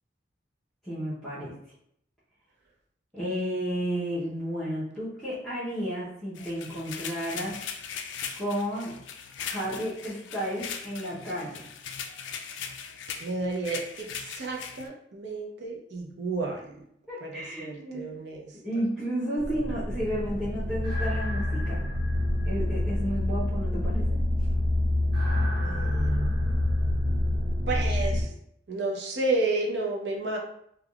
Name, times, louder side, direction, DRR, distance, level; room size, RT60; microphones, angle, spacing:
voice 1, 0.8-1.7 3.1-7.6 8.3-8.9 9.4-11.7 17.1-18.0 18.6-21.8 22.4-24.2, equal, ahead, -12 dB, 0.7 m, -32 dB
sound 1, 6.3-14.9, left 7 dB, 85° left, 0.3 m, -39 dB
voice 2, 13.2-16.8 17.2-18.5 25.6-26.6 27.7-28.3 28.7-30.4, right 3 dB, 70° right, 0 dB, 0.5 m, -31 dB
sound 2, 19.4-28.2, left 1 dB, 55° right, 1.5 m, -27 dB
3.4 x 2.2 x 2.3 m, 0.72 s
head